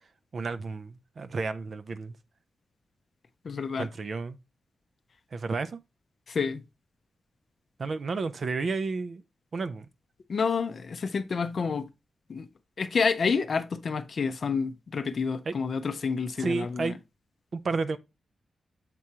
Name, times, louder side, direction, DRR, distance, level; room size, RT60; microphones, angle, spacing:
voice 1, 0.3-2.1 3.8-4.4 5.3-5.8 7.8-9.2 9.5-9.9 15.5-15.6 16.4-17.0 17.5-18.0, right 4 dB, 45° right, 0.4 m, -31 dB
voice 2, 3.4-3.9 6.3-6.6 10.3-11.9 12.3-12.5 12.8-16.9, left 5 dB, 45° left, 0.5 m, -29 dB
7.5 x 4.7 x 2.8 m
wide cardioid pair, 175°, 0 cm